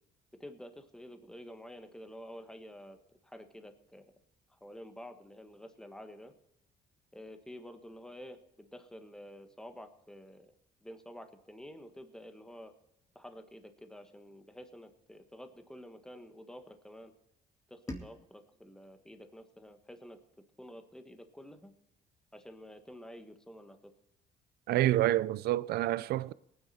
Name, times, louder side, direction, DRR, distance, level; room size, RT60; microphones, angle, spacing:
voice 1, 0.4-3.0 3.2-4.0 4.5-6.3 7.1-10.5 10.8-12.7 13.1-17.1 17.7-20.2 20.6-21.7 22.3-23.9, equal, 5° left, 1.3 m, -49 dB
sound 1, 17.9-20.8, left 1 dB, 20° left, 2.3 m, -49 dB
voice 2, 24.7-26.3, right 15 dB, 70° right, 0.5 m, -28 dB
19.0 x 9.7 x 4.3 m
cardioid pair, 110°, 17 cm